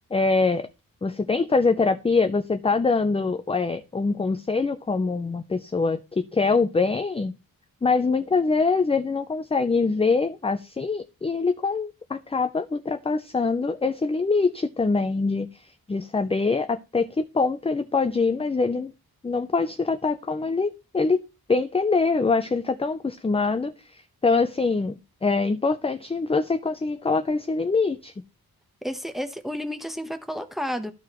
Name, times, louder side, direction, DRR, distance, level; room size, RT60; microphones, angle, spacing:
voice 1, 0.1-0.7 1.0-7.4 7.8-18.9 19.2-21.2 21.5-28.1, left 4 dB, 15° left, 0.4 m, -24 dB
voice 2, 28.8-30.9, equal, ahead, 0.9 m, -31 dB
13.5 x 4.7 x 3.0 m
wide cardioid pair, 110°, 37 cm